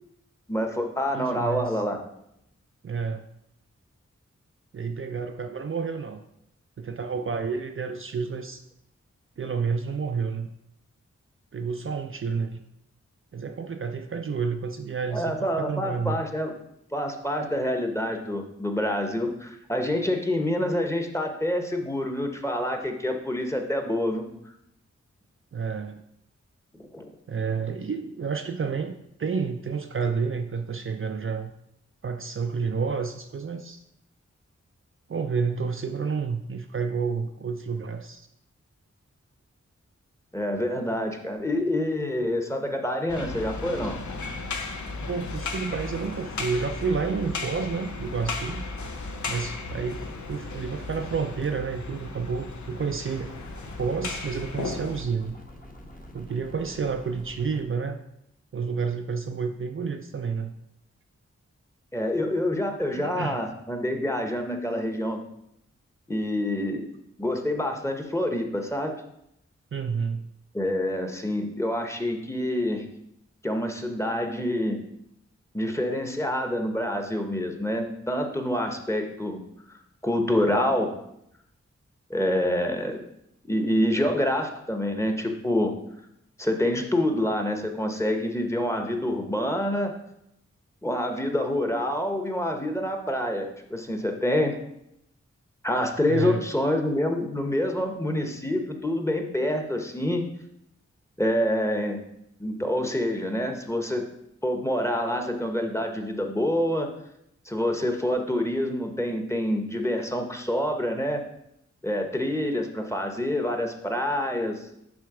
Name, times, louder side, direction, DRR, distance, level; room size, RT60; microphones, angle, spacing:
voice 1, 0.5-2.0 15.1-16.5 16.9-24.3 26.8-27.1 40.3-44.0 61.9-65.2 66.1-66.9 67.2-69.0 70.5-72.8 73.4-74.8 75.5-79.4 80.0-80.9 82.1-83.0 83.4-85.8 86.4-89.9 90.8-94.6 95.6-100.3 101.2-102.0 102.4-104.0 104.4-106.9 107.5-111.2 111.8-114.7, left 1 dB, 10° left, 4 dB, 1.0 m, -27 dB
voice 2, 1.1-1.8 2.8-3.2 4.7-6.2 6.8-8.6 9.4-10.5 11.5-12.6 13.3-16.2 25.5-26.0 27.3-31.5 32.0-33.8 35.1-38.3 45.1-48.6 49.3-50.0 50.3-53.3 53.8-55.4 56.1-58.0 58.5-60.5 62.9-63.4 69.7-70.2 96.1-96.5, right 5 dB, 45° right, 5 dB, 0.5 m, -30 dB
sound 1, 43.1-55.0, left 3 dB, 80° left, 0.7 m, -35 dB
sound 2, 53.3-57.6, left 1 dB, 30° left, 1.1 m, -46 dB
6.3 x 3.4 x 4.8 m, 0.79 s
cardioid pair, 40°, 29 cm